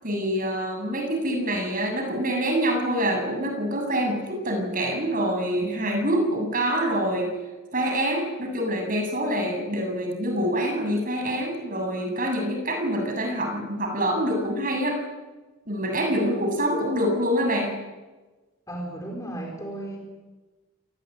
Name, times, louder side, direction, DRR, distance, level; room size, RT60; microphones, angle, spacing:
voice 1, 0.0-7.3 7.7-15.0 15.7-17.8, equal, 40° right, 3 dB, 7.4 m, -26 dB
voice 2, 18.7-20.2, right 1 dB, 15° left, 1 dB, 4.6 m, -35 dB
28.0 x 20.0 x 9.5 m, 1.2 s
head